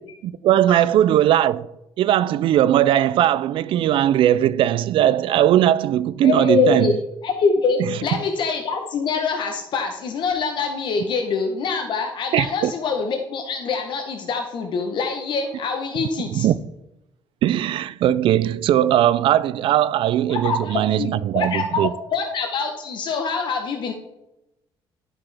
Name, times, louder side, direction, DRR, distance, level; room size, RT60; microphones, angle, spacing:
voice 1, 0.2-1.7 2.0-7.0 7.8-8.0 12.3-12.7 16.3-16.6 17.4-21.9, right 11 dB, 65° right, 0.3 m, -19 dB
voice 2, 6.2-6.9 7.2-16.5 20.3-23.9, left 5 dB, 55° left, 0.9 m, -24 dB
11.0 x 5.8 x 3.4 m
cardioid pair, 150°, 10 cm